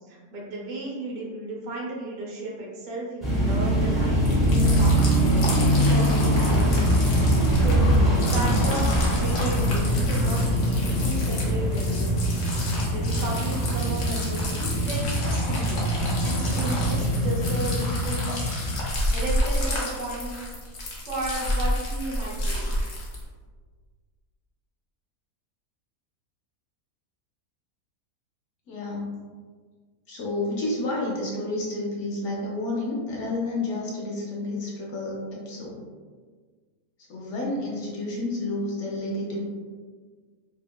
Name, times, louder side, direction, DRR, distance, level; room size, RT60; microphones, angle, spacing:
voice 1, 0.1-6.9 7.3-12.1 12.8-15.9 16.2-18.4 19.1-20.3 21.0-22.7, right 2 dB, 55° right, -4 dB, 0.5 m, -34 dB
sound 1, 3.2-19.1, equal, ahead, 0.5 m, -23 dB
sound 2, 4.2-23.2, left 1 dB, 80° left, 1.2 m, -31 dB
voice 2, 28.7-29.2 30.1-35.9 37.1-39.4, left 2 dB, 60° left, -3 dB, 0.9 m, -30 dB
2.9 x 2.1 x 2.2 m, 1.5 s
omnidirectional pair, 1.6 m